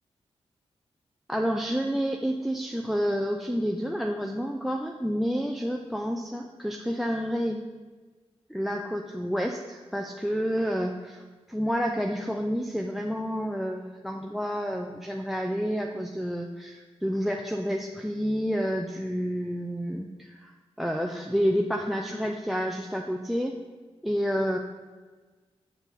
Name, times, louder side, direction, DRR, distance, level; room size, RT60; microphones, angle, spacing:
voice 1, 1.3-7.6 8.5-11.2 11.5-20.5 20.8-23.6 24.0-24.6, equal, ahead, 2 dB, 0.5 m, -29 dB
7.0 x 6.7 x 4.0 m, 1.3 s
cardioid pair, 80°, 11 cm